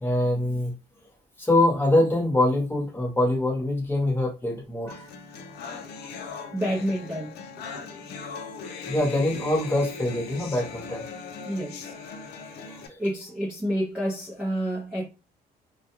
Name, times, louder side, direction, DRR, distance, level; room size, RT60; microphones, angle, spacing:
voice 1, 0.0-0.7 1.4-5.0 8.9-11.0 12.7-12.8, left 1 dB, 10° left, 1.0 m, -24 dB
sound 1, 4.9-12.9, left 5 dB, 75° left, 0.5 m, -39 dB
voice 2, 6.5-7.9 11.5-11.9 13.0-15.1, equal, 5° right, 0.5 m, -29 dB
2.2 x 2.2 x 2.9 m
cardioid pair, 110°, 17 cm